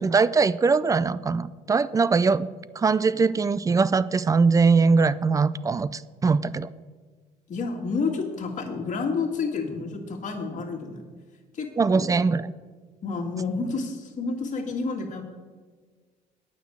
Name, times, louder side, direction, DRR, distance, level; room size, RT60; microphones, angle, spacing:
voice 1, 0.0-2.5 2.8-6.7 11.8-12.5, right 4 dB, 20° right, 17 dB, 0.4 m, -21 dB
voice 2, 7.5-11.0 11.5-11.7 11.9-12.1 13.0-15.2, left 4 dB, 45° left, 1 dB, 2.0 m, -29 dB
9.4 x 6.1 x 8.3 m, 1.5 s
cardioid pair, 110°, 17 cm